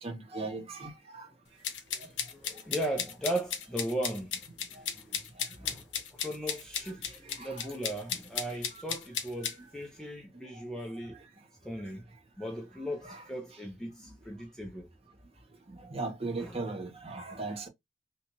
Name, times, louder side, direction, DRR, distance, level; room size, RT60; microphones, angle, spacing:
voice 1, 0.0-1.3 7.4-7.6 13.0-13.2 15.9-17.7, right 3 dB, 35° right, 0.8 m, -37 dB
sound 1, 1.6-9.5, left 8 dB, 85° left, 0.6 m, -35 dB
voice 2, 1.9-5.2 5.5-11.2 11.6-12.1 12.4-14.9 16.4-16.6, right 1 dB, 5° left, 0.5 m, -38 dB
2.7 x 2.4 x 2.8 m
head